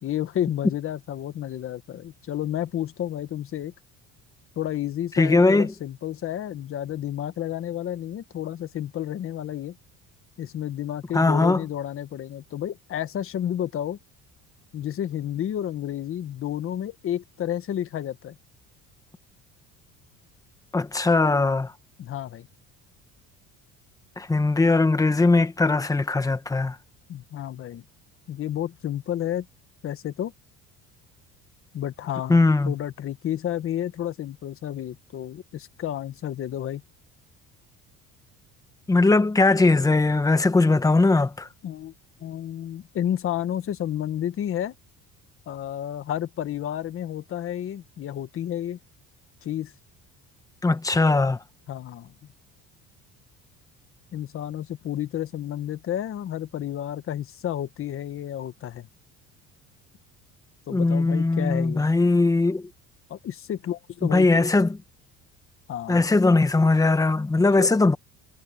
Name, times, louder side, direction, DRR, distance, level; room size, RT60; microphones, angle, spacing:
voice 1, 0.0-3.7 4.6-9.7 10.4-14.0 14.7-18.3 22.0-22.5 27.1-27.8 28.3-29.5 29.8-30.3 31.7-36.8 41.6-41.9 42.2-44.7 45.5-48.8 49.4-49.7 51.7-52.1 54.1-58.9 60.7-61.9 63.1-64.5 65.7-66.0 67.6-67.7, left 11 dB, 45° left, 1.4 m, -31 dB
voice 2, 5.2-5.7 11.1-11.6 20.7-21.7 24.2-26.8 32.3-32.7 38.9-41.5 50.6-51.4 60.7-62.7 64.0-64.8 65.9-68.0, left 3 dB, 10° left, 1.3 m, -20 dB
cardioid pair, 140°, 32 cm